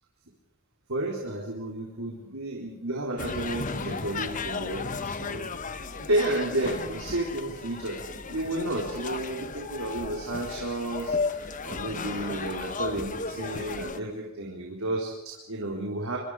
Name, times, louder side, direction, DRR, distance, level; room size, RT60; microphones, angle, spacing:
voice 1, 0.9-5.5 5.9-16.2, right 1 dB, 90° right, -1 dB, 4.0 m, -32 dB
sound 1, 3.2-14.0, left 4 dB, 40° left, 1.2 m, -34 dB
25.0 x 25.0 x 5.1 m, 0.82 s
head